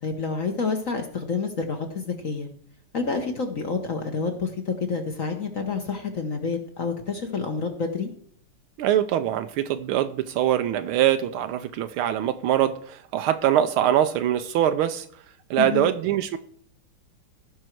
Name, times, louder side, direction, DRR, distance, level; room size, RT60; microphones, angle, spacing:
voice 1, 0.0-2.5 2.9-8.1 15.6-15.9, left 4 dB, 45° left, 4 dB, 1.3 m, -28 dB
voice 2, 8.8-15.1 15.5-16.4, right 11 dB, 80° right, 9 dB, 1.5 m, -23 dB
16.0 x 5.6 x 4.5 m, 0.63 s
omnidirectional pair, 2.3 m